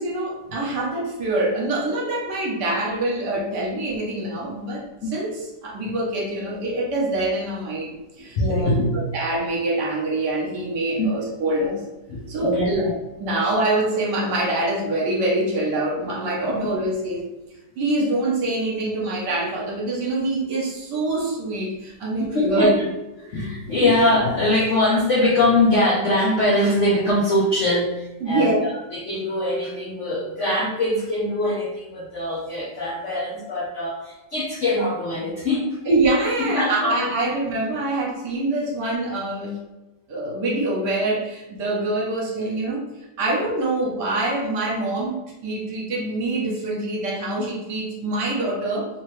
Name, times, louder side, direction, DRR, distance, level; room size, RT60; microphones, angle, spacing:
voice 1, 0.0-7.9 8.2-8.7 9.1-11.8 12.3-17.2 17.8-22.7 23.8-23.9 28.2-28.7 35.8-39.6 40.1-42.9 43.2-45.2 45.4-48.9, right 2 dB, 65° right, -3 dB, 1.5 m, -25 dB
voice 2, 8.3-8.9 11.0-11.1 12.1-12.9 16.5-16.7 22.2-22.8 23.3-35.8 36.5-37.1, left 1 dB, 65° left, -5 dB, 0.7 m, -22 dB
3.3 x 3.0 x 3.1 m, 1.0 s
omnidirectional pair, 2.0 m